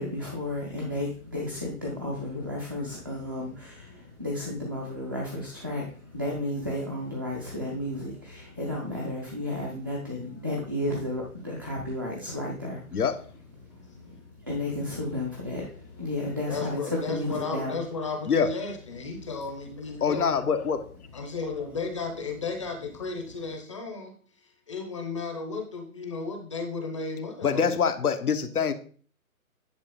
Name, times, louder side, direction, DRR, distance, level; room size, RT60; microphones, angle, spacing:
voice 1, 0.0-13.0 14.0-14.1 14.4-17.8, left 1 dB, 15° right, 0.5 m, -33 dB
voice 2, 16.5-20.3 21.1-24.1 24.7-27.7, left 4 dB, 20° left, 0.7 m, -34 dB
voice 3, 20.0-20.9 27.4-28.7, left 6 dB, 85° left, 1.1 m, -25 dB
9.5 x 4.5 x 3.8 m
hypercardioid pair, 160°, 44 cm